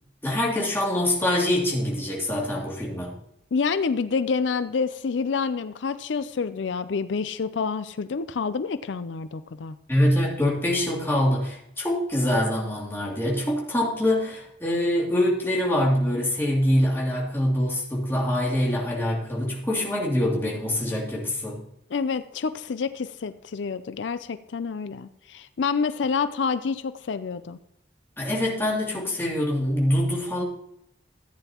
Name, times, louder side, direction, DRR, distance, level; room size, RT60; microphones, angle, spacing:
voice 1, 0.2-3.2 9.9-21.6 28.2-30.4, left 1 dB, 15° left, -5 dB, 2.6 m, -24 dB
voice 2, 3.5-9.8 21.9-27.6, left 5 dB, 85° left, 12 dB, 0.5 m, -28 dB
14.5 x 9.0 x 2.9 m, 0.80 s
head